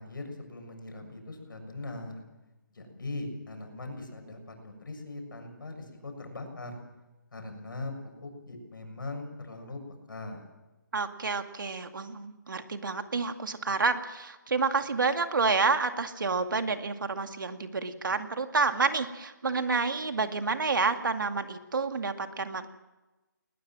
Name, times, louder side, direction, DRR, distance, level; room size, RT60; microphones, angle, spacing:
voice 1, 0.0-2.2 2.7-6.8 7.3-7.9 8.2-9.8 10.1-10.4, left 2 dB, 80° left, 5 dB, 7.1 m, -40 dB
voice 2, 10.9-22.7, right 4 dB, 75° right, 7 dB, 2.2 m, -29 dB
20.5 x 20.0 x 7.6 m, 1.1 s
hypercardioid pair, 170°, 11 cm